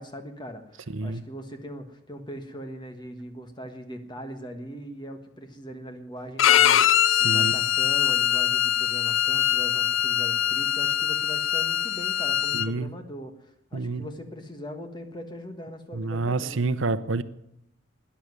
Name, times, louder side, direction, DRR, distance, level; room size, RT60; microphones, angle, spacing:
voice 1, 0.0-16.6, equal, 20° left, 1.5 m, -40 dB
voice 2, 0.9-1.2 7.1-7.5 12.5-12.9 13.7-14.1 15.9-17.2, right 3 dB, 70° right, 0.7 m, -28 dB
Bowed string instrument, 6.4-12.7, left 11 dB, 70° left, 0.5 m, -22 dB
13.0 x 10.5 x 9.7 m
head